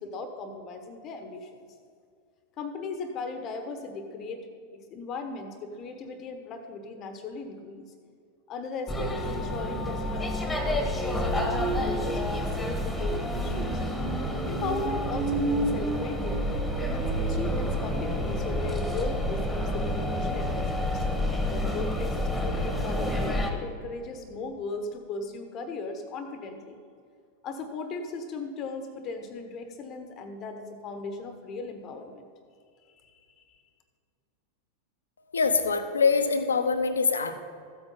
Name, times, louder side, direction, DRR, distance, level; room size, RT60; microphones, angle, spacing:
voice 1, 0.0-1.5 2.6-7.9 8.5-13.8 14.5-16.5 16.8-21.0 21.5-26.8 27.4-32.3 32.9-33.5, left 3 dB, 35° left, 7 dB, 1.1 m, -37 dB
sound 1, 8.9-23.5, equal, 10° left, 1.5 m, -28 dB
voice 2, 35.3-37.4, left 4 dB, 70° left, 9 dB, 0.9 m, -24 dB
14.5 x 8.2 x 5.5 m, 2.3 s
figure-of-eight pair, 90°, 0 cm